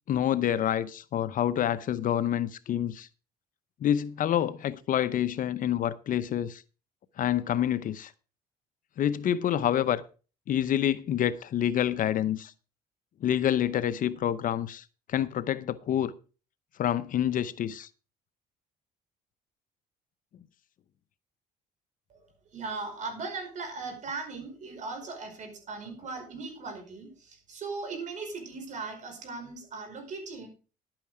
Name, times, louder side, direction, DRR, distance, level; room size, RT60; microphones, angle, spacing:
voice 1, 0.1-3.1 3.8-6.6 7.2-8.1 9.0-10.0 10.5-12.5 13.2-16.1 16.8-17.9, left 10 dB, 55° left, 0.7 m, -27 dB
voice 2, 22.5-30.5, right 4 dB, 45° right, 4.9 m, -38 dB
11.5 x 8.9 x 4.9 m
cardioid pair, 110°, 17 cm